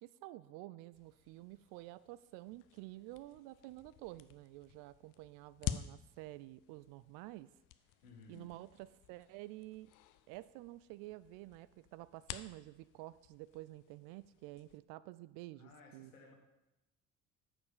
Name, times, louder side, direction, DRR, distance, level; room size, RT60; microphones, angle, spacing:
voice 1, 0.0-7.5 8.3-9.9 10.3-16.1, right 17 dB, 55° right, 16 dB, 0.5 m, -50 dB
sound 1, 0.9-14.8, left 12 dB, 50° left, 0.6 m, -50 dB
voice 2, 8.0-8.5 15.6-16.3, left 3 dB, 75° left, 1 dB, 1.8 m, -57 dB
7.1 x 6.2 x 6.7 m, 0.96 s
figure-of-eight pair, 55°, 42 cm